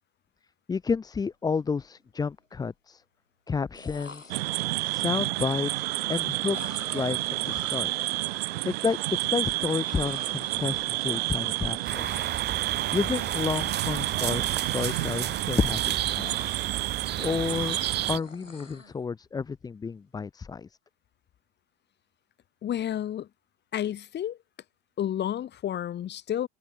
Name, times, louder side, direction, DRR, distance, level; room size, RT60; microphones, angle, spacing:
voice 1, 0.7-3.0 3.5-4.4 4.9-5.8 6.1-7.9 8.6-12.1 12.9-16.5 17.2-17.8 18.1-20.7, left 5 dB, 10° left, 0.7 m, -30 dB
sound 1, 1.3-1.5 1.8-2.4 3.5-3.6 3.7-5.0 6.5-8.7 9.9-11.6 11.8-12.6 12.9-13.7 14.1-15.8 16.0-17.0 17.4-19.0, left 3 dB, 85° left, 7.4 m, -47 dB
sound 2, 4.3-18.2, right 20 dB, 55° right, 1.6 m, -30 dB
sound 3, 11.8-18.2, right 11 dB, 25° right, 1.8 m, -33 dB
voice 2, 22.6-23.3 23.7-24.4 25.0-26.5, left 10 dB, 30° left, 2.7 m, -30 dB
figure-of-eight pair, 85°, 37 cm